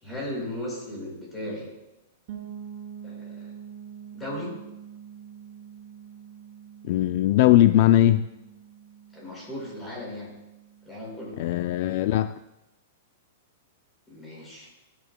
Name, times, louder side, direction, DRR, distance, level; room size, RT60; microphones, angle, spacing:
voice 1, 0.0-1.7 3.0-3.5 4.1-4.5 9.1-10.3 10.8-11.3 14.1-14.7, left 1 dB, 10° left, -5 dB, 5.4 m, -36 dB
sound 1, 2.3-12.0, right 8 dB, 45° right, 4.5 m, -45 dB
voice 2, 6.8-8.3 11.4-12.4, left 13 dB, 50° left, 12 dB, 0.3 m, -19 dB
22.5 x 11.0 x 2.2 m, 0.97 s
supercardioid pair, 160°, 0 cm